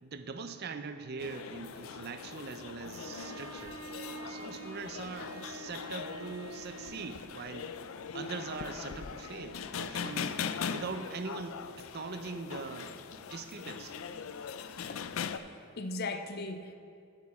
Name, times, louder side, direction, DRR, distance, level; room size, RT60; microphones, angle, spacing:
voice 1, 0.0-3.8 4.3-7.7 8.1-10.3 10.7-14.0, right 4 dB, 50° right, 9 dB, 0.5 m, -42 dB
sound 1, 1.2-15.4, left 6 dB, 85° left, 0.4 m, -41 dB
Bowed string instrument, 2.9-7.3, right 4 dB, 85° right, 0.9 m, -47 dB
voice 2, 14.9-15.4 15.8-16.7, left 3 dB, 50° left, 8 dB, 0.6 m, -39 dB
9.6 x 8.3 x 4.3 m, 2.4 s
head